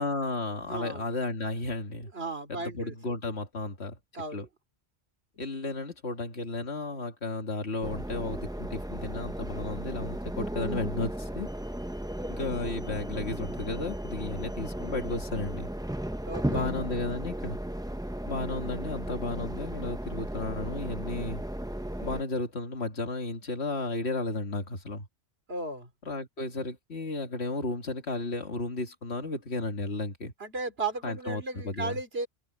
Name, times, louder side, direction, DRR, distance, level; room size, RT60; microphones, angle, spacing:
voice 1, 0.0-2.1 2.5-4.0 4.3-4.5 5.4-11.5 12.3-15.7 16.5-17.6 18.3-21.4 22.0-25.1 26.0-30.3 31.0-32.0, left 3 dB, 80° left, 2.4 m, -33 dB
voice 2, 0.7-1.0 2.1-2.9 4.1-4.5 16.3-16.7 25.5-25.9 30.4-32.3, right 3 dB, 70° right, 3.1 m, -35 dB
sound 1, 7.8-22.2, right 1 dB, 5° right, 0.6 m, -35 dB
omnidirectional pair, 1.1 m